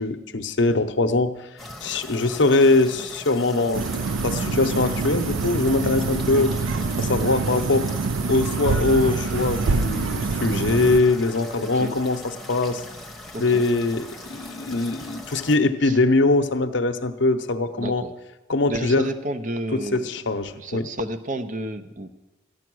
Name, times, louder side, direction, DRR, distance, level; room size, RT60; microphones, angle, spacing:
voice 1, 0.0-1.4 1.8-3.9 4.2-6.6 7.0-7.9 8.3-12.8 13.4-18.0 18.5-19.1 19.7-20.9, left 2 dB, 65° left, 9 dB, 0.8 m, -22 dB
sound 1, 1.6-15.6, left 1 dB, ahead, 1.0 m, -40 dB
sound 2, 3.7-11.0, right 4 dB, 75° right, 0.5 m, -25 dB
voice 2, 11.6-11.9 13.3-13.7 15.8-16.0 17.7-18.1 18.7-22.1, right 1 dB, 40° right, 11 dB, 0.7 m, -31 dB
14.0 x 10.5 x 6.2 m, 1.1 s
head